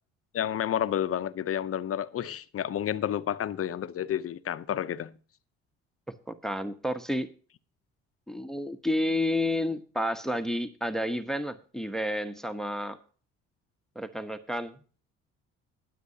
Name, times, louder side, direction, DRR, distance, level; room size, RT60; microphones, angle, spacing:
voice 1, 0.3-5.1, left 10 dB, 45° left, 0.7 m, -30 dB
voice 2, 6.3-7.3 8.3-13.0 13.9-14.7, left 1 dB, ahead, 1.0 m, -30 dB
21.0 x 7.5 x 2.8 m
supercardioid pair, 75°, 32 cm